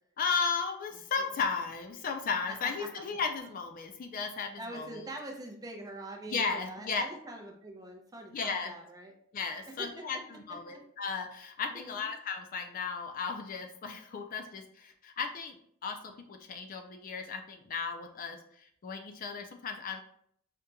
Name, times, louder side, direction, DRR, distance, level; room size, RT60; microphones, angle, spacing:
voice 1, 0.2-5.0 6.3-7.0 8.3-8.7 9.3-15.6 15.8-20.0, left 5 dB, 40° left, 5 dB, 0.4 m, -35 dB
voice 2, 4.6-9.1 9.7-10.0 10.7-10.8 11.7-12.1, right 1 dB, 15° right, 2 dB, 0.5 m, -44 dB
5.0 x 2.8 x 2.2 m, 0.67 s
head